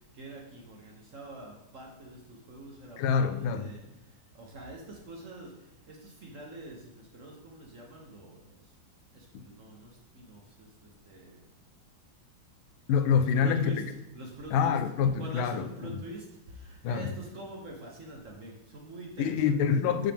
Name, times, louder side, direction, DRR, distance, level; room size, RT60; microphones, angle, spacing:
voice 1, 0.2-3.8 4.4-5.5 5.9-8.4 9.1-11.4 13.2-13.8 14.1-14.8 15.2-19.6, right 2 dB, 50° right, -1 dB, 1.0 m, -45 dB
voice 2, 3.0-3.6 9.3-9.4 12.9-13.7 14.5-15.7 16.8-17.1 19.2-20.1, left 6 dB, 85° left, 9 dB, 1.4 m, -26 dB
7.2 x 5.9 x 3.4 m, 0.93 s
omnidirectional pair, 2.2 m